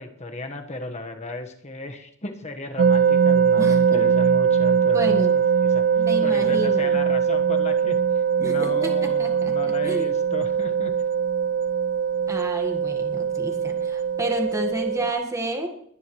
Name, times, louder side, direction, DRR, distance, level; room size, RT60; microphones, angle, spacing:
voice 1, 0.0-5.2 5.6-5.9 6.2-10.9, left 2 dB, 30° left, 5 dB, 1.4 m, -35 dB
sound 1, 2.8-15.1, right 7 dB, 40° right, 0.4 m, -21 dB
voice 2, 3.6-4.0 4.9-5.3 6.0-7.0 8.4-10.1 12.3-15.7, equal, 15° right, 2 dB, 1.6 m, -30 dB
21.0 x 10.5 x 3.2 m, 0.68 s
head